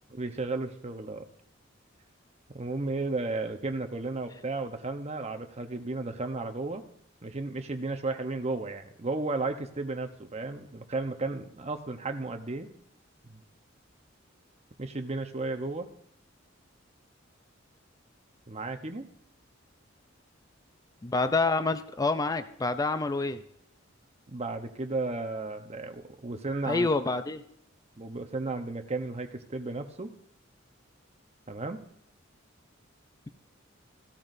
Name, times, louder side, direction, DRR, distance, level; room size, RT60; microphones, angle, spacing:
voice 1, 0.1-1.2 2.5-6.8 7.2-12.7 13.2-13.4 14.8-15.9 18.5-19.1 24.3-26.9 28.0-30.1 31.5-31.8, right 3 dB, 35° right, 7 dB, 0.9 m, -34 dB
voice 2, 21.0-23.4 26.7-27.4, left 3 dB, 20° left, 10 dB, 0.4 m, -27 dB
15.0 x 13.5 x 2.6 m, 0.69 s
head